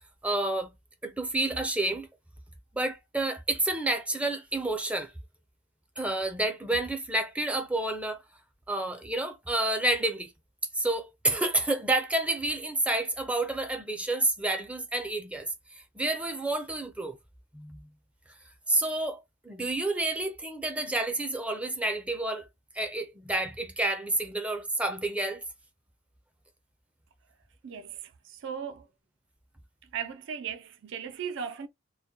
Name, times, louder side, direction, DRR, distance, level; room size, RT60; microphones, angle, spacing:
voice 1, 0.2-0.7 1.0-2.1 2.7-5.1 6.0-8.2 8.7-10.3 10.7-15.5 16.0-17.2 17.5-17.9 18.7-22.5 22.7-25.4, right 2 dB, 5° right, 0.4 m, -29 dB
voice 2, 27.6-28.9 29.9-31.7, right 7 dB, 65° right, 0.4 m, -37 dB
2.3 x 2.1 x 2.7 m
head